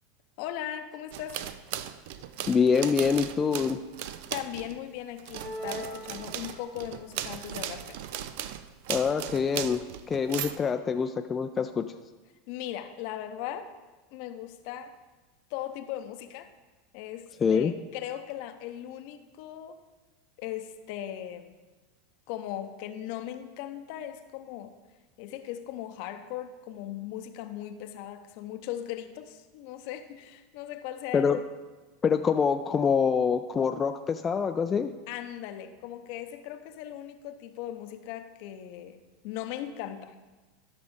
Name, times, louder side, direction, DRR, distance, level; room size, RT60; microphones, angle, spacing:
voice 1, 0.4-1.4 4.3-8.0 12.5-13.7 14.1-14.9 15.5-16.5 16.9-19.8 20.4-21.5 22.3-24.8 25.2-31.4 35.1-40.1, left 11 dB, 55° left, 9 dB, 0.7 m, -38 dB
sound 1, 1.1-4.8 5.2-10.6, right 11 dB, 60° right, 0.4 m, -37 dB
voice 2, 2.5-3.8 8.9-11.9 17.4-17.7 31.1-31.4 32.0-34.9, left 6 dB, 25° left, 7 dB, 0.4 m, -25 dB
sound 2, 5.4-7.0, right 2 dB, 45° right, 1.4 m, -40 dB
12.5 x 6.0 x 3.7 m, 1.2 s
figure-of-eight pair, 85°, 0 cm